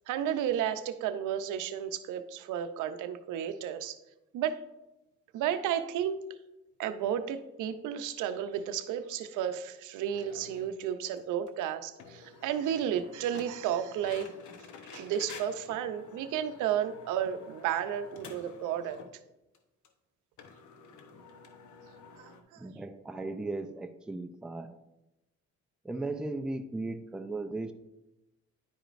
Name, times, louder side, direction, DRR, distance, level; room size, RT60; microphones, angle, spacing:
voice 1, 0.1-4.0 4.3-4.6 5.3-6.2 6.8-14.3 14.9-19.0 22.2-22.7, right 9 dB, 90° right, 10 dB, 0.6 m, -32 dB
sound 1, 10.1-10.7 11.2-11.3 11.5-11.6 12.0-19.2 19.5-19.6 19.8-19.9 20.4-22.4, left 4 dB, 75° left, 0.9 m, -50 dB
voice 2, 22.6-24.8 25.8-27.7, right 2 dB, 5° right, 6 dB, 0.4 m, -36 dB
10.5 x 5.0 x 2.5 m, 0.96 s
cardioid pair, 90°, 30 cm